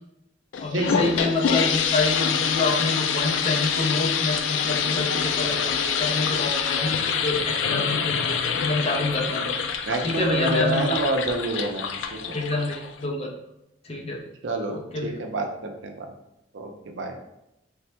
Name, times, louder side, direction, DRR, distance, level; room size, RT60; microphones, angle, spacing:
sound 1, 0.5-13.0, left 6 dB, 75° left, 0.4 m, -26 dB
voice 1, 0.6-9.5 10.0-11.0 12.3-13.3 13.8-14.2 14.7-15.2, left 2 dB, 35° left, 0 dB, 0.6 m, -27 dB
voice 2, 9.9-12.2 14.4-16.1 16.5-17.1, right 2 dB, 70° right, 4 dB, 0.5 m, -28 dB
3.4 x 2.1 x 4.2 m, 0.86 s
head